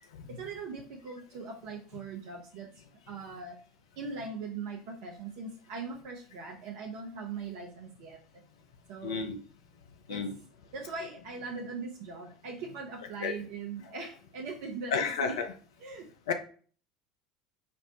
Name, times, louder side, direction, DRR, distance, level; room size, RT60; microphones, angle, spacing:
voice 1, 0.3-2.7 3.1-3.6 4.0-8.2 8.9-9.3 10.1-10.2 10.7-15.4 15.8-16.1, right 4 dB, 55° right, 0 dB, 0.5 m, -40 dB
voice 2, 9.0-9.4 10.1-10.3 13.2-13.3 14.9-15.5 16.3-16.4, left 5 dB, 65° left, 7 dB, 0.5 m, -31 dB
5.2 x 2.0 x 2.7 m, 0.41 s
figure-of-eight pair, 70°, 3 cm